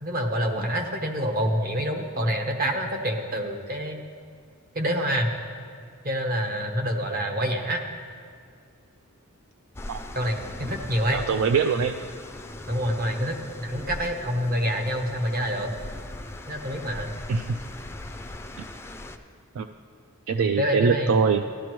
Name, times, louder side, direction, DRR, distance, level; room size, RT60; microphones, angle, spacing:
voice 1, 0.0-4.0 4.7-5.3 6.0-7.8 10.1-11.2 12.7-15.7 16.5-17.1 20.6-21.1, equal, 45° right, 3 dB, 1.0 m, -27 dB
sound 1, 9.8-19.2, left 1 dB, 10° left, 0.4 m, -39 dB
voice 2, 11.1-11.9 17.3-17.6 19.6-19.7 20.3-21.4, right 5 dB, 70° right, 7 dB, 0.4 m, -23 dB
15.0 x 11.0 x 3.1 m, 2.2 s
head